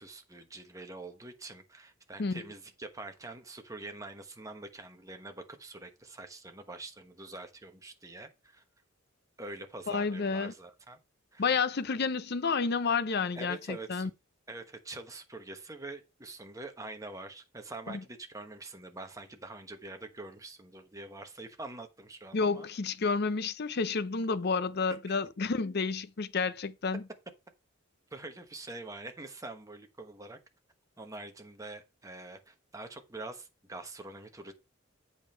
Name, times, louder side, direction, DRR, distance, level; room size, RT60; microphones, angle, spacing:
voice 1, 0.0-8.6 9.4-11.0 11.3-11.6 13.3-14.1 14.5-22.7 28.1-30.4 31.0-34.5, right 2 dB, 15° right, 1.1 m, -45 dB
voice 2, 9.9-10.5 11.4-14.1 17.9-18.0 22.3-27.0, left 4 dB, 50° left, 0.6 m, -30 dB
8.3 x 5.3 x 4.5 m
head